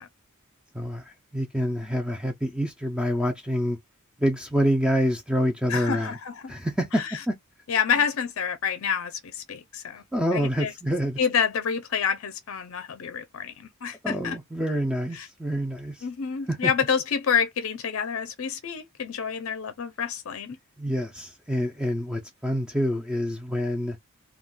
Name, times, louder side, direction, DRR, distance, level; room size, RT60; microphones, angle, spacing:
voice 1, 0.7-3.8 4.2-6.2 6.5-7.4 10.1-11.2 14.0-16.1 16.5-16.7 20.8-24.0, equal, 5° right, 0.4 m, -27 dB
voice 2, 5.7-6.5 6.9-7.2 7.7-10.0 10.3-10.7 11.2-14.4 15.1-15.3 16.0-20.6, left 7 dB, 60° left, 0.5 m, -28 dB
2.3 x 2.3 x 3.6 m
head